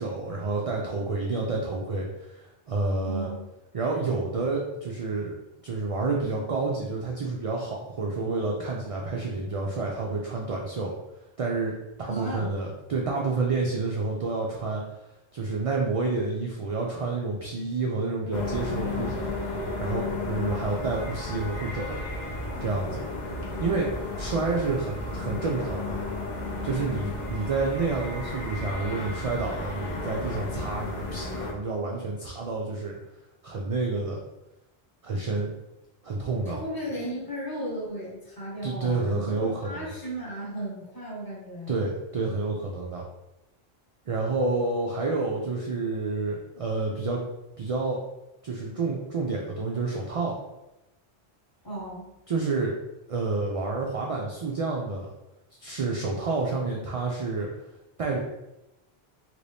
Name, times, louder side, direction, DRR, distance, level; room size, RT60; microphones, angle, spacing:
voice 1, 0.0-3.3 3.7-5.3 5.6-10.9 11.4-14.8 15.3-19.3 19.8-22.0 22.6-23.1 23.6-26.0 26.6-33.0 33.4-34.2 35.0-35.5 36.0-36.6 38.6-39.9 41.7-43.1 44.1-47.2 47.6-48.0 48.4-50.4 52.3-52.7 53.1-55.1 55.6-57.5 58.0-58.2, right 3 dB, 60° right, -1 dB, 0.3 m, -29 dB
voice 2, 3.0-3.4 12.0-12.5 36.4-41.8 51.6-52.0, right 1 dB, 20° left, -6 dB, 1.0 m, -35 dB
sound 1, 18.3-31.5, left 2 dB, 50° left, 0.6 m, -33 dB
2.9 x 2.6 x 3.3 m, 0.92 s
omnidirectional pair, 1.1 m